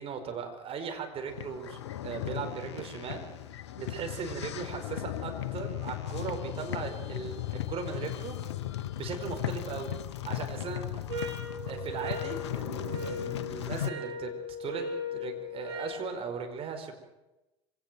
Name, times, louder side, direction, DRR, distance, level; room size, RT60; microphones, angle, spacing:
voice 1, 0.0-3.3 3.8-8.4 9.0-9.9 10.2-11.0 11.6-16.9, right 6 dB, 40° right, 5 dB, 4.9 m, -38 dB
sound 1, 1.3-13.9, left 13 dB, 70° left, 1.1 m, -37 dB
sound 2, 11.1-16.0, left 2 dB, 75° right, 7.6 m, -38 dB
25.5 x 17.5 x 7.6 m, 1.0 s
figure-of-eight pair, 65°, 15 cm